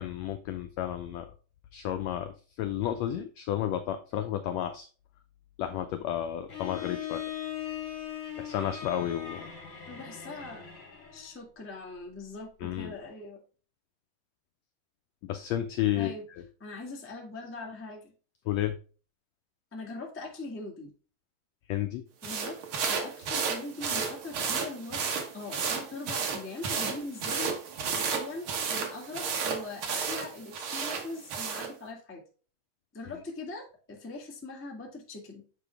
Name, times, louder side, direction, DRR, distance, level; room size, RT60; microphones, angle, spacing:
voice 1, 0.0-1.3 1.7-4.9 5.6-7.2 8.4-9.5 12.6-12.9 15.2-16.4 18.4-18.8 21.7-22.0, left 11 dB, 85° left, 8 dB, 1.5 m, -32 dB
Bowed string instrument, 6.5-11.4, left 10 dB, 35° left, 3.5 m, -39 dB
voice 2, 9.9-10.6 11.1-13.4 15.9-16.2 16.6-18.1 19.7-20.9 22.2-22.6 22.9-25.0 25.3-27.5 27.9-32.2 32.9-35.4, left 3 dB, 10° left, -1 dB, 0.5 m, -41 dB
sound 1, 22.2-31.7, right 6 dB, 60° right, 1.4 m, -32 dB
7.5 x 5.0 x 3.4 m, 0.36 s
omnidirectional pair, 3.7 m